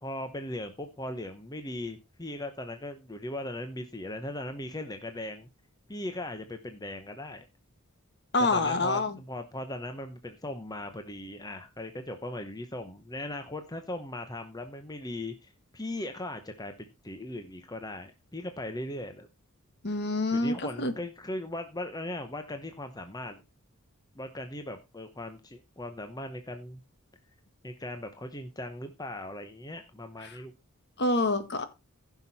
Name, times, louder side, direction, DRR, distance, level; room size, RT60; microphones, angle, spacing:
voice 1, 0.0-5.5 5.9-7.5 8.4-19.3 20.3-23.4 24.1-26.8 27.6-30.5, left 1 dB, 15° left, 7 dB, 1.0 m, -38 dB
voice 2, 8.3-9.2 19.8-20.9 30.2-30.4 31.0-31.6, left 2 dB, 50° left, 10 dB, 1.7 m, -27 dB
15.5 x 6.0 x 4.2 m, 0.26 s
head